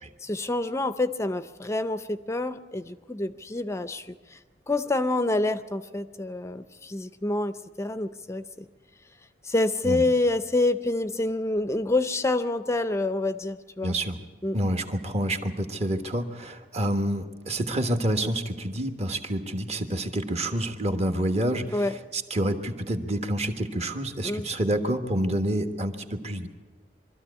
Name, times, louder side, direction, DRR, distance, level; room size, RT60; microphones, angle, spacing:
voice 1, 0.2-4.1 4.7-8.7 9.5-14.0 14.4-14.6 21.7-21.9 24.2-24.5, left 2 dB, 15° left, 11 dB, 0.5 m, -27 dB
voice 2, 13.8-14.2 14.5-26.5, right 1 dB, 40° right, 7 dB, 1.3 m, -28 dB
23.0 x 13.5 x 8.3 m, 1.4 s
head